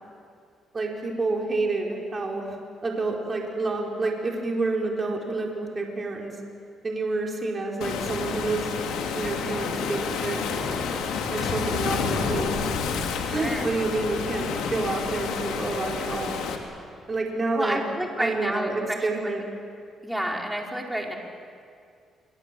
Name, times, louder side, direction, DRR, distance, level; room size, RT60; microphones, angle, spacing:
voice 1, 0.7-2.6 2.8-6.3 6.8-8.7 9.2-10.6 11.3-12.7 13.3-16.4 17.1-17.8 18.2-19.4, right 3 dB, 30° right, 0 dB, 4.5 m, -28 dB
Waves surf, 7.8-16.6, left 5 dB, 90° left, 2.8 m, -29 dB
voice 2, 13.3-13.7 17.5-19.3 20.0-21.2, right 1 dB, 5° right, 0 dB, 4.5 m, -30 dB
27.0 x 24.5 x 7.7 m, 2.3 s
cardioid pair, 90°, 0 cm